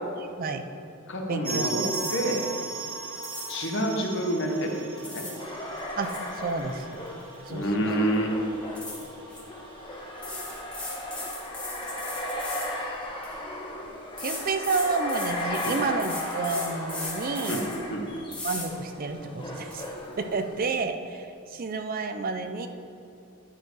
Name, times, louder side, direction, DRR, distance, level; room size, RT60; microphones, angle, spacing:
voice 1, 0.2-0.7 1.3-2.0 6.0-7.0 7.5-7.9 14.2-17.6 18.4-22.7, right 4 dB, 45° right, 7 dB, 0.5 m, -30 dB
voice 2, 1.1-1.8 2.1-2.4 3.5-4.7 5.1-5.2 7.5-8.3 15.6-15.8 17.5-17.6 17.9-18.1, right 1 dB, 60° left, 1 dB, 1.2 m, -27 dB
sound 1, 1.4-12.0 12.2-12.3 12.6-12.7 13.3-13.4, right 4 dB, 70° right, 1.1 m, -39 dB
sound 2, 1.8-2.4 3.2-3.7 4.7-5.4 5.8-7.6 7.9-8.1 8.8-9.4 10.2-13.3 14.2-17.8 18.3-18.7 19.1-19.2 19.6-19.9, left 2 dB, 5° left, 1.8 m, -38 dB
sound 3, 5.4-20.8, left 1 dB, 25° left, 1.1 m, -36 dB
10.0 x 4.6 x 4.7 m, 2.7 s
head